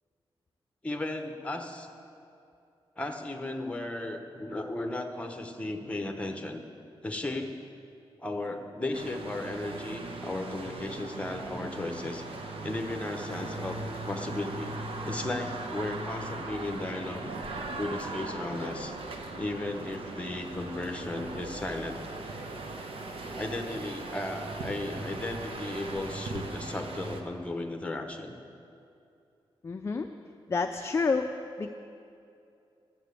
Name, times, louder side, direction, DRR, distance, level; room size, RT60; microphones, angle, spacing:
voice 1, 0.8-1.9 3.0-6.6 7.0-7.5 8.2-12.2 12.6-13.8 14.1-14.7 15.0-17.3 17.8-18.9 19.4-22.0 23.4-28.4, left 2 dB, 15° left, 4 dB, 0.9 m, -35 dB
sound 1, 8.9-27.2, right 2 dB, 70° right, 1.1 m, -39 dB
voice 2, 29.6-30.1 30.5-31.3 31.6-31.7, left 4 dB, 30° left, 5 dB, 0.4 m, -28 dB
11.5 x 7.5 x 8.3 m, 2.6 s
wide cardioid pair, 150°, 10 cm